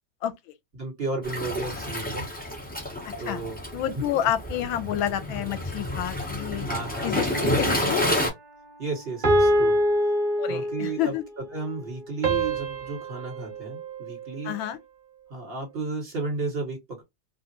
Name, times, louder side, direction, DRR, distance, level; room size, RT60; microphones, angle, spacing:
voice 1, 0.7-2.3 3.2-3.6 6.7-7.9 8.8-9.7 10.5-11.2 11.5-14.5 15.3-17.0, right 3 dB, 30° right, 1.7 m, -33 dB
Waves surf, 1.2-8.3, left 1 dB, 15° left, 0.4 m, -29 dB
voice 2, 3.7-6.7 7.0-7.2 7.6-8.0 10.4-11.2 14.4-14.8, left 11 dB, 80° left, 1.4 m, -29 dB
sound 1, 7.3-8.0 9.2-11.0 12.2-14.6, right 1 dB, 80° right, 0.4 m, -25 dB
3.1 x 2.4 x 2.7 m
omnidirectional pair, 2.2 m